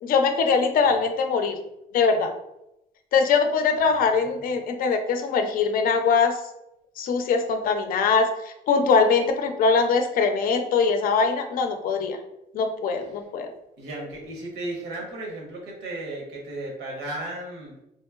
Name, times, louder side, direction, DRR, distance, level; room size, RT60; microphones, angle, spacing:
voice 1, 0.0-1.6 1.9-2.3 3.1-6.4 7.0-12.2 12.5-13.5, left 5 dB, 55° left, 6 dB, 0.5 m, -22 dB
voice 2, 13.8-17.7, right 1 dB, 90° right, -1 dB, 1.0 m, -35 dB
3.0 x 2.8 x 2.3 m, 0.86 s
cardioid pair, 110°, 17 cm